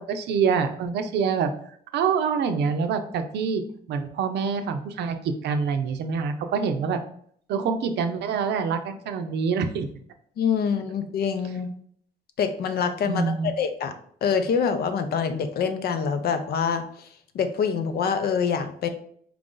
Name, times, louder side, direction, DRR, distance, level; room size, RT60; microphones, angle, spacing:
voice 1, 0.0-1.5 1.9-3.6 3.9-5.2 5.4-7.0 7.5-9.9 13.1-13.5, right 6 dB, 80° right, 7 dB, 0.6 m, -25 dB
voice 2, 10.4-11.7 12.4-13.9 14.2-17.1 17.3-18.9, left 6 dB, 65° left, 8 dB, 0.6 m, -25 dB
4.6 x 2.5 x 3.8 m, 0.62 s
cardioid pair, 120°, 17 cm